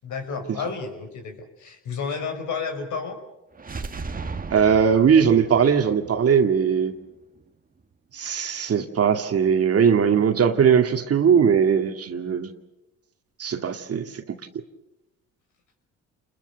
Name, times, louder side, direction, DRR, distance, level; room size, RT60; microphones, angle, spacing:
voice 1, 0.0-3.2, left 5 dB, 65° left, 5 dB, 5.5 m, -31 dB
sound 1, 3.5-7.4, right 4 dB, 25° right, 1.7 m, -37 dB
voice 2, 4.5-6.9 8.1-12.5 13.4-14.2, right 7 dB, 45° right, 6 dB, 2.2 m, -20 dB
29.0 x 21.5 x 7.0 m, 0.95 s
supercardioid pair, 70°, 32 cm